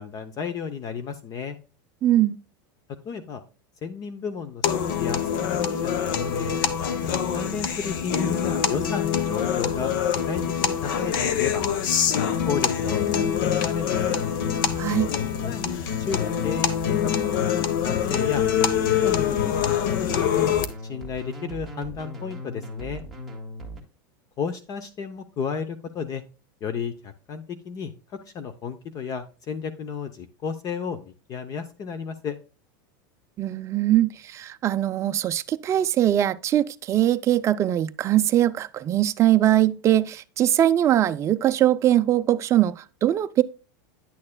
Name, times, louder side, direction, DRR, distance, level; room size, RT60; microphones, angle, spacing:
voice 1, 0.0-1.6 3.0-3.4 3.8-4.7 5.0-6.6 7.3-9.9 10.2-11.6 12.2-14.2 15.4-18.4 18.9-19.5 19.9-20.6 20.8-23.0 24.4-26.2 26.6-32.4, left 6 dB, 30° left, 0.7 m, -33 dB
voice 2, 2.0-2.4 14.8-15.1 33.4-43.4, right 12 dB, 25° right, 0.4 m, -21 dB
sound 1, 4.6-20.6, left 8 dB, 70° left, 1.0 m, -25 dB
sound 2, 18.8-23.8, equal, ahead, 1.8 m, -38 dB
9.8 x 6.5 x 2.2 m
supercardioid pair, 140°, 11 cm